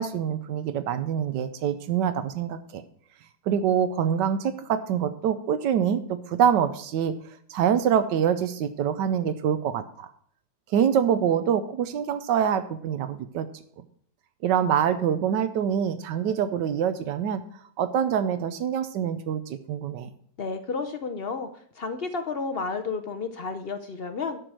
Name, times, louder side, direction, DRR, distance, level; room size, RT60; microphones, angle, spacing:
voice 1, 0.0-2.8 3.5-7.2 7.5-10.1 10.7-13.5 14.4-17.4 17.8-20.1, right 8 dB, 85° right, 11 dB, 1.3 m, -25 dB
voice 2, 20.4-21.5 21.8-24.4, left 4 dB, 60° left, 8 dB, 0.6 m, -31 dB
11.5 x 4.7 x 7.5 m, 0.62 s
omnidirectional pair, 1.9 m